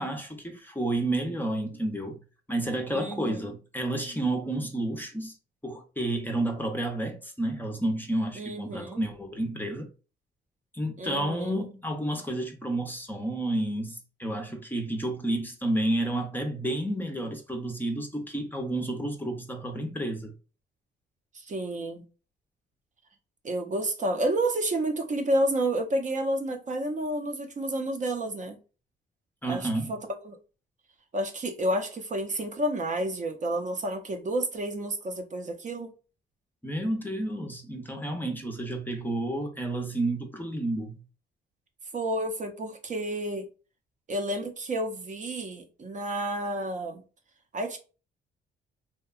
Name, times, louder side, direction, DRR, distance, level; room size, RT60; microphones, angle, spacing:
voice 1, 0.0-2.2 2.5-5.3 5.6-9.9 10.7-20.3 29.4-29.9 36.6-41.0, right 1 dB, 10° left, 0.6 m, -30 dB
voice 2, 2.9-3.5 8.4-9.1 11.0-11.6 21.3-22.0 23.4-28.6 29.5-30.0 30.2-30.4 31.1-35.9 41.9-43.5 44.1-47.0 47.5-47.8, right 1 dB, 40° right, 0.6 m, -30 dB
2.7 x 2.1 x 2.3 m
cardioid pair, 90°, 20 cm